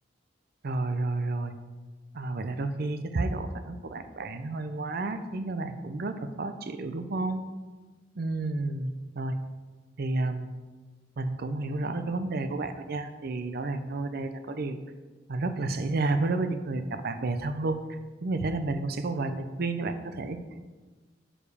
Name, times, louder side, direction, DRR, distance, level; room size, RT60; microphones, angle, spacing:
voice 1, 0.6-1.5 2.1-7.4 8.1-9.4 10.0-10.5 11.2-14.8 15.3-20.4, right 2 dB, 55° right, 9 dB, 0.5 m, -31 dB
6.9 x 5.0 x 4.9 m, 1.3 s
head